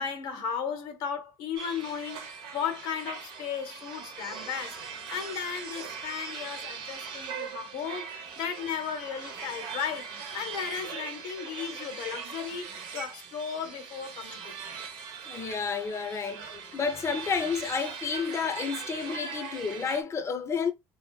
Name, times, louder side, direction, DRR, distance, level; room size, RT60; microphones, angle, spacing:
voice 1, 0.0-4.8 5.1-10.1 10.3-14.6, left 7 dB, 80° left, 0.8 m, -35 dB
sound 1, 1.5-20.0, right 6 dB, 80° right, 0.8 m, -40 dB
voice 2, 15.3-20.7, left 5 dB, 35° left, 0.6 m, -31 dB
3.1 x 2.7 x 2.2 m
supercardioid pair, 85°, 9 cm